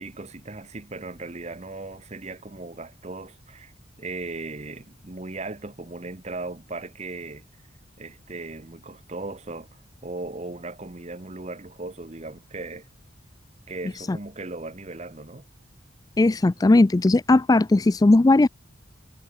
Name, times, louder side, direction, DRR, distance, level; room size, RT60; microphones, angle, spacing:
voice 1, 0.0-3.7 4.0-7.4 8.0-12.9 13.7-15.5, right 2 dB, 35° right, 1.2 m, -37 dB
voice 2, 16.2-18.5, left 2 dB, 20° left, 0.3 m, -17 dB
head